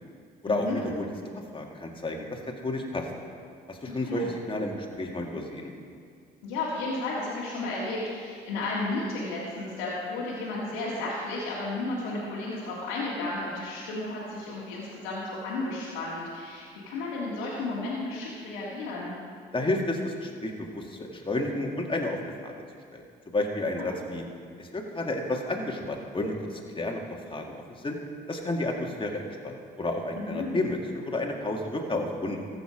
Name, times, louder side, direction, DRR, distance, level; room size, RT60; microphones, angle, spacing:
voice 1, 0.4-1.1 1.5-3.1 3.7-5.7 19.5-22.2 22.4-22.5 22.9-23.0 23.3-24.2 24.6-27.0 27.3-28.0 28.3-32.4, left 2 dB, 25° left, 1 dB, 2.0 m, -31 dB
voice 2, 3.9-4.3 6.4-19.1 23.8-23.9 30.2-30.6, left 2 dB, 90° left, -7 dB, 1.8 m, -33 dB
14.5 x 7.0 x 5.1 m, 2.2 s
supercardioid pair, 55°, 21 cm